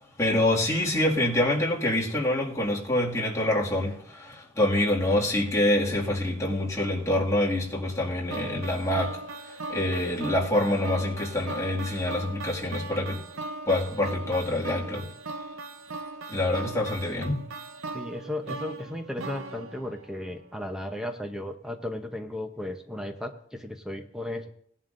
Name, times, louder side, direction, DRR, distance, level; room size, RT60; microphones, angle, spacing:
voice 1, 0.2-13.2 13.7-15.1 16.3-17.4, left 1 dB, 15° left, 2.2 m, -26 dB
sound 1, 8.3-20.5, right 3 dB, 85° right, 0.8 m, -39 dB
voice 2, 17.9-24.5, left 1 dB, 5° right, 0.8 m, -35 dB
18.5 x 11.0 x 2.6 m
head